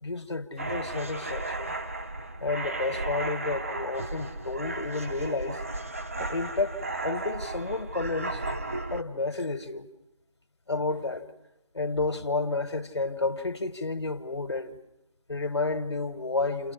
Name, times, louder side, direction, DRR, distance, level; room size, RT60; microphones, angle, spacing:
voice 1, 0.0-1.8 2.4-5.6 6.2-8.4 8.9-9.9 10.7-11.3 11.7-14.8 15.3-16.7, left 3 dB, 60° left, 1.6 m, -31 dB
sound 1, 0.6-9.0, right 2 dB, 30° right, 0.7 m, -34 dB
29.0 x 24.5 x 5.8 m
figure-of-eight pair, 170°, 16 cm